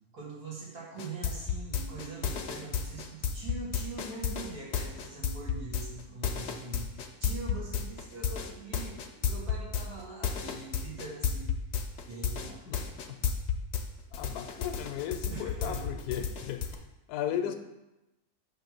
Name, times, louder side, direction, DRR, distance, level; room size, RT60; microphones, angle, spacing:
voice 1, 0.1-11.5 12.0-12.6 15.3-15.8 17.3-17.4, right 3 dB, 80° right, -6 dB, 2.3 m, -43 dB
sound 1, 1.0-13.8 14.1-16.8, left 7 dB, 60° left, 0.7 m, -32 dB
voice 2, 14.1-16.8 17.1-17.5, left 10 dB, 80° left, 7 dB, 1.1 m, -35 dB
6.7 x 3.0 x 5.9 m, 0.97 s
omnidirectional pair, 1.6 m